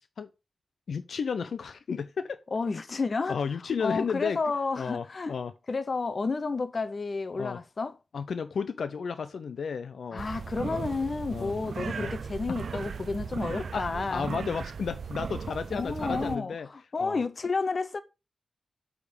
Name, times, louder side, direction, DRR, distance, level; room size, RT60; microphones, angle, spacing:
voice 1, 0.9-2.4 3.3-4.4 4.8-5.5 7.3-7.6 8.1-10.2 10.6-10.8 11.3-11.5 12.0-12.1 13.5-16.7 17.0-17.2, left 6 dB, 80° left, 0.6 m, -33 dB
voice 2, 2.5-3.4 3.8-5.4 5.7-7.9 10.1-14.3 15.7-18.0, left 4 dB, 40° left, 0.7 m, -31 dB
sound 1, 10.2-16.4, right 6 dB, 70° right, 0.4 m, -37 dB
8.3 x 3.7 x 6.7 m
wide cardioid pair, 150°, 0 cm